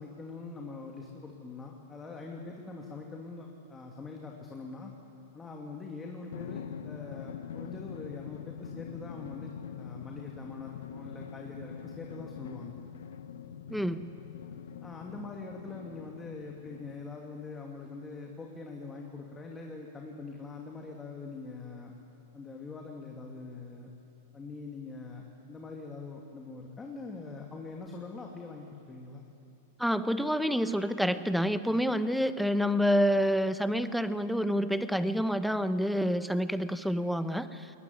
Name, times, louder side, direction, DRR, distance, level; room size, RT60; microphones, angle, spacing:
voice 1, 0.0-4.9 5.3-12.8 14.8-21.9 22.3-23.9 24.3-29.2, left 3 dB, 15° left, 0 dB, 2.6 m, -43 dB
Drum, 6.3-17.4, left 8 dB, 75° left, 1.0 m, -44 dB
voice 2, 13.7-14.1 29.8-37.7, equal, ahead, 12 dB, 1.0 m, -28 dB
21.0 x 20.5 x 9.5 m, 2.8 s
hypercardioid pair, 110°, 0 cm